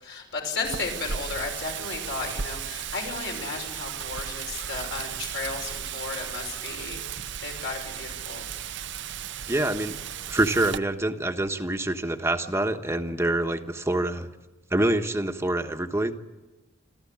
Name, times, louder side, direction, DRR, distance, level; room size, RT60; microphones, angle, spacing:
voice 1, 0.0-7.0 7.4-8.5, left 4 dB, 65° left, 2 dB, 5.8 m, -34 dB
Wind, 0.6-10.8, right 8 dB, 65° right, 0.7 m, -35 dB
voice 2, 9.5-10.0 10.3-14.3 14.7-16.1, right 1 dB, 15° right, 6 dB, 1.2 m, -26 dB
27.0 x 14.0 x 8.6 m, 1.2 s
head